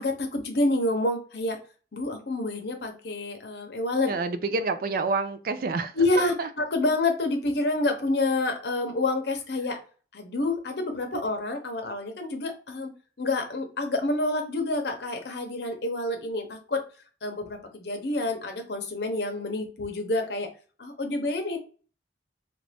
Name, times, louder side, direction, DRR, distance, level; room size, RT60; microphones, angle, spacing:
voice 1, 0.0-1.6 1.9-4.1 5.9-9.8 10.1-12.9 13.2-16.8 17.2-20.5 20.8-21.6, left 2 dB, 65° left, 5 dB, 0.8 m, -28 dB
voice 2, 4.1-5.9 6.4-6.5 11.1-11.2, right 4 dB, 55° right, 10 dB, 0.4 m, -28 dB
3.3 x 2.6 x 3.3 m, 0.38 s
head